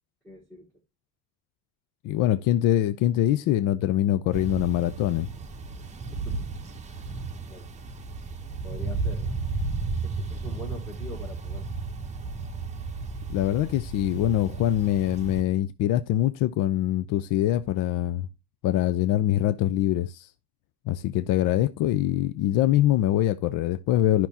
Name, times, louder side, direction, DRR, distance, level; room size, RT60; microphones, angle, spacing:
voice 1, 0.2-0.7 6.1-6.2 7.5-7.7 8.6-9.3 10.0-11.7, equal, 5° left, 1.4 m, -42 dB
voice 2, 2.0-5.3 13.3-18.3 18.6-20.3 20.9-24.3, left 13 dB, 60° left, 0.5 m, -24 dB
sound 1, 4.3-15.4, right 4 dB, 20° right, 0.9 m, -34 dB
11.0 x 5.9 x 2.7 m
cardioid pair, 150°, 38 cm